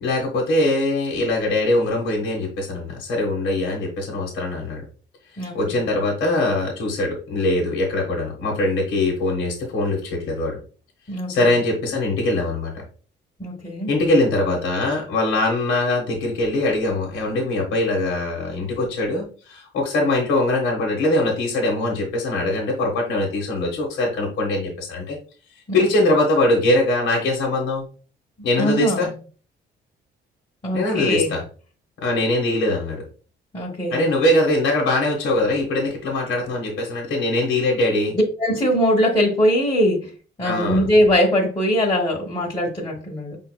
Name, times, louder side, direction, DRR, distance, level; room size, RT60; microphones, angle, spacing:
voice 1, 0.0-4.8 5.3-10.6 11.3-12.7 13.9-25.2 25.7-27.8 28.4-29.1 30.7-31.4 32.0-33.0 33.9-38.1 40.4-40.9, left 2 dB, 90° left, -1 dB, 1.3 m, -22 dB
voice 2, 5.4-5.8 11.1-11.6 13.4-13.9 25.7-26.1 28.6-29.1 30.6-31.3 33.5-34.1 38.1-40.0 40.4-43.4, equal, 25° left, -4 dB, 1.3 m, -21 dB
5.7 x 3.7 x 2.2 m, 0.39 s
cardioid pair, 90°, 20 cm